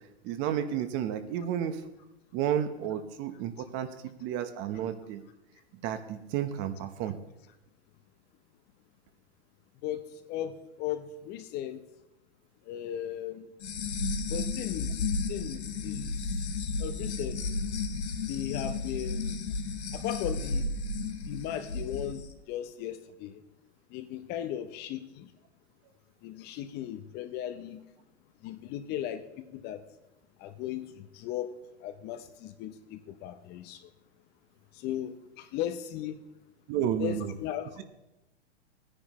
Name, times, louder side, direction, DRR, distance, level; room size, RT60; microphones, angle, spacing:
voice 1, 0.2-1.8 2.3-3.9 4.2-5.2 5.8-7.2 36.7-37.3, right 10 dB, 35° right, 10 dB, 1.0 m, -31 dB
voice 2, 10.3-11.8 12.7-13.5 14.3-16.5 16.8-17.4 18.3-19.4 19.9-20.7 21.3-23.4 23.9-25.3 26.2-27.8 28.4-29.8 30.4-31.5 31.8-33.9 34.7-36.2 37.0-37.8, left 11 dB, 30° left, 10 dB, 0.7 m, -37 dB
sound 1, 13.6-22.2, left 3 dB, 80° left, 1.5 m, -33 dB
16.0 x 9.8 x 3.1 m, 0.96 s
hypercardioid pair, 120°, 33 cm